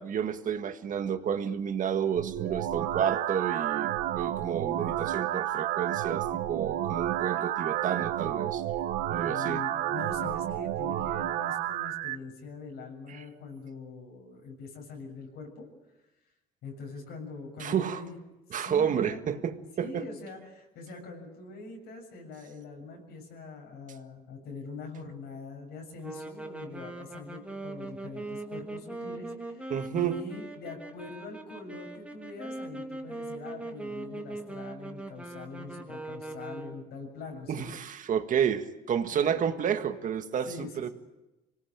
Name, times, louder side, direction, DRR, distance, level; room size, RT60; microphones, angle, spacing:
voice 1, 0.0-8.6 9.1-9.7 13.1-13.2 17.6-18.0 18.5-20.1 29.7-30.2 37.5-40.9, right 8 dB, 50° right, 8 dB, 1.8 m, -30 dB
sound 1, 2.2-12.2, right 13 dB, 90° right, 1.1 m, -31 dB
voice 2, 9.2-15.7 16.6-18.2 18.6-19.2 19.8-37.7 39.1-39.4 40.5-40.7, left 3 dB, 80° left, 0 dB, 7.2 m, -43 dB
sound 2, 26.0-37.0, right 2 dB, 5° right, 2.5 m, -41 dB
25.5 x 18.0 x 8.8 m, 1.0 s
cardioid pair, 110°, 17 cm